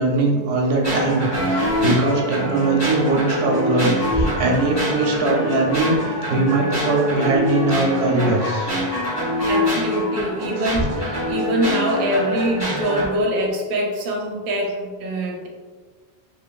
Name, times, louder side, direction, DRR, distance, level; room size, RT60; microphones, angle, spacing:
voice 1, 0.0-8.8, right 2 dB, 90° right, 0 dB, 0.9 m, -21 dB
sound 1, 0.8-13.1, equal, 20° left, 1.0 m, -24 dB
voice 2, 9.5-15.5, right 1 dB, 65° right, 0 dB, 0.7 m, -24 dB
3.1 x 2.2 x 2.2 m, 1.5 s
omnidirectional pair, 1.1 m